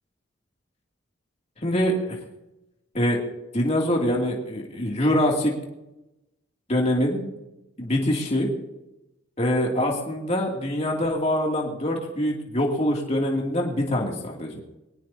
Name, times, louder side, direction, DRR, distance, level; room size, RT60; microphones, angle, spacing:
voice 1, 1.6-2.2 2.9-3.2 3.5-5.5 6.7-7.3 7.8-8.5 9.4-14.6, left 1 dB, 35° left, -1 dB, 2.6 m, -24 dB
22.5 x 18.0 x 2.8 m, 0.94 s
head